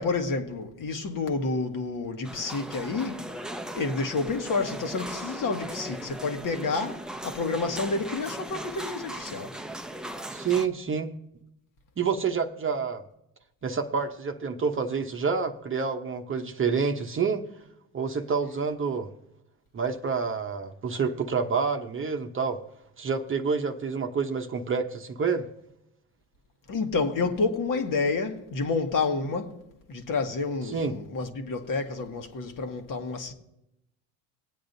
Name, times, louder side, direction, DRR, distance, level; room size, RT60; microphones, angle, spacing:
voice 1, 0.0-3.2 3.7-9.5 26.7-29.6 29.9-33.3, left 4 dB, 50° left, 1.5 m, -29 dB
sound 1, 2.2-10.7, right 1 dB, ahead, 0.6 m, -38 dB
voice 2, 10.3-11.1 12.0-13.0 13.6-17.4 17.9-19.1 19.7-22.6 23.0-25.5 30.7-30.9, right 5 dB, 30° right, 0.9 m, -28 dB
20.0 x 8.5 x 2.7 m
supercardioid pair, 80°, 43 cm